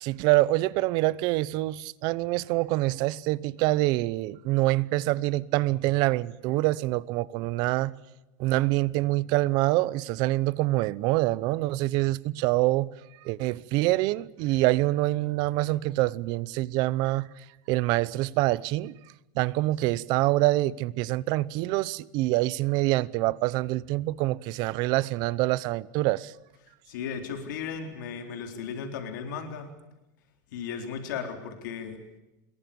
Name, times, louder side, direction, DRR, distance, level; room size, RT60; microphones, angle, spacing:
voice 1, 0.0-7.9 8.4-12.9 13.2-17.3 17.7-18.9 19.4-26.3, right 18 dB, 45° right, 0.8 m, -25 dB
voice 2, 26.9-29.7 30.5-32.0, left 6 dB, 80° left, 4.0 m, -35 dB
25.5 x 22.0 x 7.1 m
supercardioid pair, 165°, 10 cm